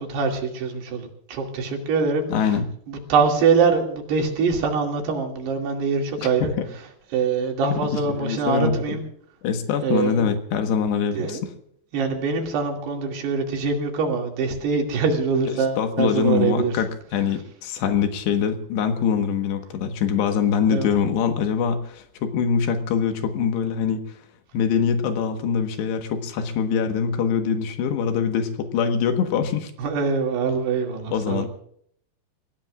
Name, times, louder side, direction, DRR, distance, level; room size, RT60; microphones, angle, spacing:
voice 1, 0.0-2.6 2.9-6.5 7.1-9.0 9.8-10.3 11.1-11.4 11.9-16.8 20.7-20.9 29.8-31.5, right 5 dB, 80° right, 1 dB, 4.5 m, -23 dB
voice 2, 2.3-2.6 8.2-9.0 9.4-11.4 15.8-24.2 24.5-29.7 31.1-31.5, left 7 dB, 90° left, 6 dB, 3.6 m, -23 dB
29.0 x 16.0 x 2.5 m, 0.66 s
omnidirectional pair, 4.8 m